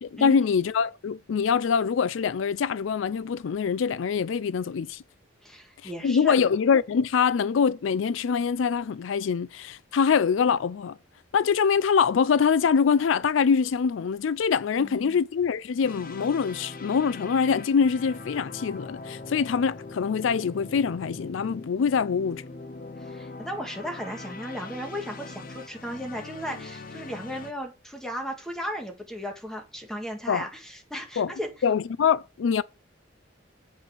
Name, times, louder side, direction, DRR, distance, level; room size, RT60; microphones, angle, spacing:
voice 1, 0.0-5.0 6.0-11.0 11.3-22.4 30.3-30.4 31.2-31.3 31.6-32.6, left 6 dB, 85° left, 0.4 m, -24 dB
voice 2, 5.4-6.3 14.7-15.2 23.0-31.5, equal, 5° left, 1.9 m, -36 dB
sound 1, 15.8-27.5, left 3 dB, 45° left, 0.6 m, -41 dB
8.0 x 5.4 x 6.0 m
head